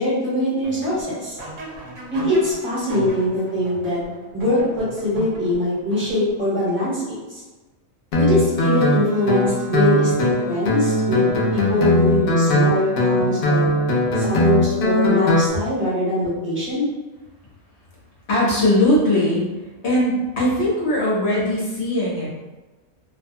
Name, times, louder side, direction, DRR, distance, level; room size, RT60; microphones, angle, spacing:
voice 1, 0.0-1.4 2.1-4.0 4.3-7.4 8.2-13.7 14.2-16.9, left 1 dB, 10° right, -9 dB, 0.9 m, -22 dB
sound 1, 0.6-6.5, right 2 dB, 65° right, 0.9 m, -37 dB
Guitar, 8.1-15.5, left 1 dB, 70° left, 0.5 m, -19 dB
Wind instrument woodwind instrument, 9.0-14.2, right 2 dB, 45° right, 0.5 m, -37 dB
voice 2, 18.3-19.5 19.8-22.3, left 1 dB, 55° left, -6 dB, 1.0 m, -19 dB
2.5 x 2.2 x 2.6 m, 1.2 s
omnidirectional pair, 1.5 m